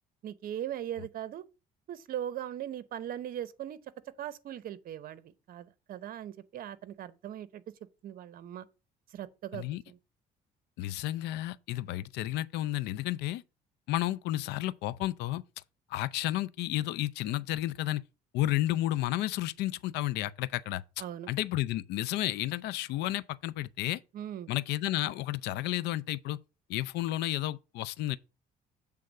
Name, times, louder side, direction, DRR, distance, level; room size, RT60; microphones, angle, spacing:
voice 1, 0.2-1.4 1.9-3.8 4.2-7.6 8.0-8.7 9.1-10.0 21.0-21.3 24.1-24.5, right 11 dB, 60° right, 0.8 m, -39 dB
voice 2, 10.8-13.4 13.9-15.4 15.9-18.0 18.3-24.0 24.5-26.4 26.7-28.2, left 15 dB, 85° left, 0.5 m, -32 dB
7.7 x 3.5 x 6.4 m
cardioid pair, 110°, 17 cm